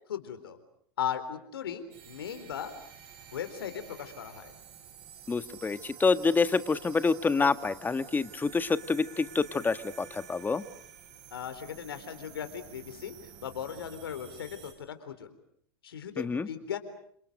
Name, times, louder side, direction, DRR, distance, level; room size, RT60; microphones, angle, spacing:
voice 1, 0.1-0.6 1.0-2.7 3.3-4.5 11.3-13.2 13.4-15.4 15.8-16.8, left 9 dB, 85° left, 10 dB, 4.0 m, -37 dB
sound 1, 1.9-14.7, right 8 dB, 50° right, 7.9 m, -50 dB
voice 2, 5.3-10.6 16.2-16.5, left 4 dB, 15° left, 12 dB, 1.5 m, -27 dB
29.0 x 27.0 x 6.5 m, 0.67 s
hypercardioid pair, 100°, 12 cm